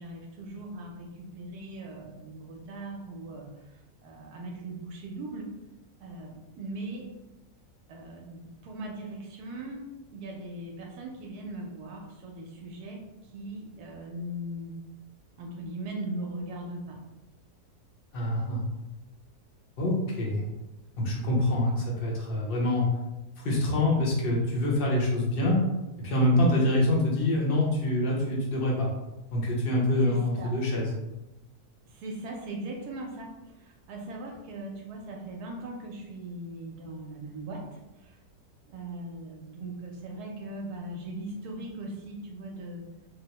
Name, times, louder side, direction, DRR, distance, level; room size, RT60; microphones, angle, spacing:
voice 1, 0.0-5.5 6.0-7.1 7.9-9.9 10.1-14.7 15.4-17.0 30.0-30.6 31.9-38.2 38.7-42.8, right 1 dB, 85° right, 1 dB, 1.1 m, -39 dB
voice 2, 18.1-18.6 19.8-20.4 21.0-22.9 23.4-25.6 26.0-28.9 29.3-30.9, left 1 dB, 50° left, -3 dB, 0.7 m, -25 dB
3.3 x 2.0 x 2.8 m, 0.99 s
omnidirectional pair, 1.6 m